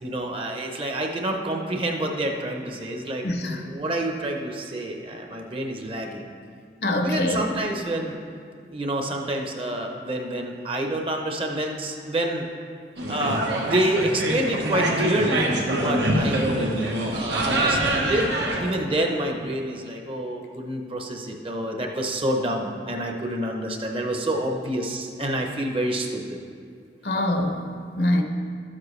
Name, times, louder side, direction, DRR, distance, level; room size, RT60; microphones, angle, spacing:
voice 1, 0.0-6.3 7.0-8.2 8.7-12.5 13.1-15.5 15.8-16.7 17.1-18.3 18.6-26.4, right 1 dB, 30° right, 2 dB, 0.8 m, -28 dB
voice 2, 3.2-3.6 6.8-7.6 27.0-27.6 28.0-28.2, left 1 dB, 65° left, 3 dB, 0.8 m, -24 dB
Small group talking at lunch, 13.0-18.6, right 1 dB, 90° right, 1.3 m, -24 dB
12.5 x 7.5 x 3.2 m, 2.2 s
head